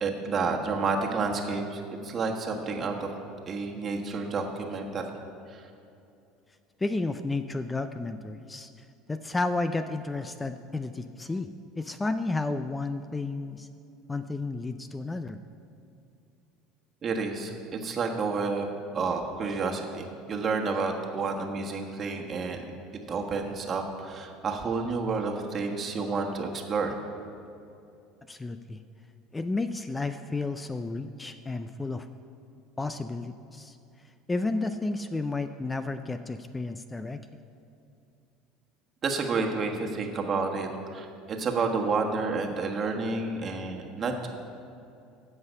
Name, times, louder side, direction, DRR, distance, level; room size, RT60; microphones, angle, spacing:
voice 1, 0.0-3.1 3.5-5.1 5.5-5.7 17.0-18.7 18.9-22.6 23.1-27.0 39.0-44.3, right 4 dB, 40° right, 2 dB, 1.4 m, -30 dB
voice 2, 6.8-11.5 11.8-13.7 14.1-15.4 28.3-28.8 29.3-32.1 32.8-33.8 34.3-37.2, left 3 dB, 15° left, 10 dB, 0.4 m, -32 dB
16.0 x 5.6 x 5.5 m, 2.6 s
hypercardioid pair, 70°, 0 cm